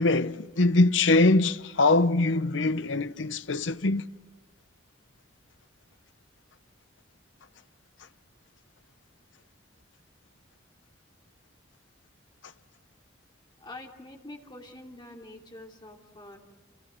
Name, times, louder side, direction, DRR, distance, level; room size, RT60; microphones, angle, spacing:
voice 1, 0.0-4.1, left 2 dB, 75° left, 0.8 m, -23 dB
voice 2, 13.6-16.4, left 2 dB, 25° left, 3.1 m, -45 dB
29.5 x 29.5 x 6.4 m
head